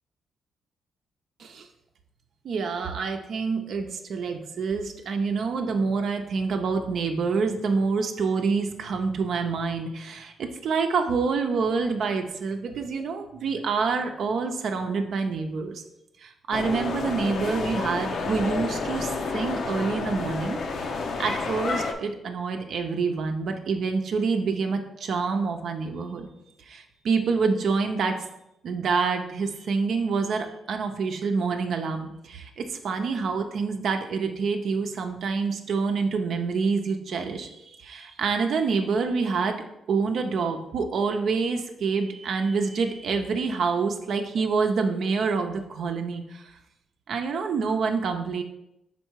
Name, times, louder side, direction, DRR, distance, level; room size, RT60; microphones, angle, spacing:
voice 1, 2.4-15.8 16.2-20.6 21.2-26.2 26.7-28.2 28.6-46.6 47.1-48.4, right 4 dB, 65° right, 4 dB, 0.6 m, -27 dB
sound 1, 16.5-21.9, left 4 dB, 60° left, 0.7 m, -30 dB
5.5 x 4.3 x 4.6 m, 0.84 s
cardioid pair, 115°, 0 cm